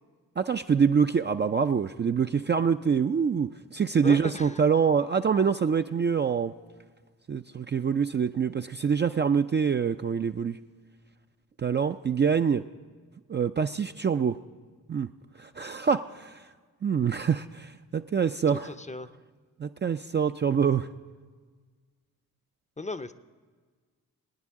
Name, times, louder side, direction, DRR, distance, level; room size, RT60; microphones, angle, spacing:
voice 1, 0.4-6.5 7.3-10.6 11.6-12.7 13.3-14.4 14.9-15.1 15.4-16.4 16.8-18.7 19.6-20.9, right 6 dB, 30° right, 7 dB, 0.4 m, -25 dB
voice 2, 4.0-4.6 18.5-19.1 22.8-23.1, left 2 dB, 15° left, 12 dB, 0.6 m, -36 dB
23.0 x 9.6 x 3.7 m, 1.5 s
supercardioid pair, 40°, 40 cm